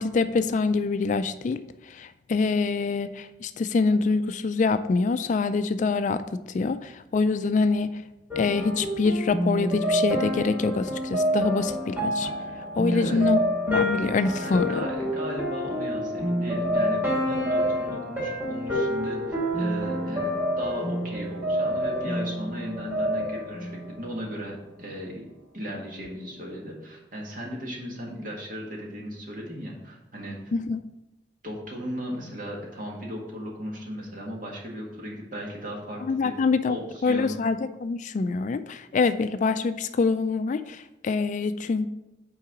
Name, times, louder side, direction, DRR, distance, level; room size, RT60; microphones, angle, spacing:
voice 1, 0.0-8.0 8.4-12.3 12.8-13.4 13.7-14.8 30.5-30.8 36.1-36.8 37.0-41.9, left 4 dB, 45° left, 11 dB, 0.3 m, -25 dB
sound 1, 8.3-24.4, equal, 10° right, 2.4 m, -28 dB
voice 2, 12.9-13.2 14.4-25.2 25.5-30.4 31.4-36.3 36.7-37.4, equal, 50° right, -1 dB, 1.8 m, -36 dB
5.9 x 4.7 x 5.9 m, 0.96 s
head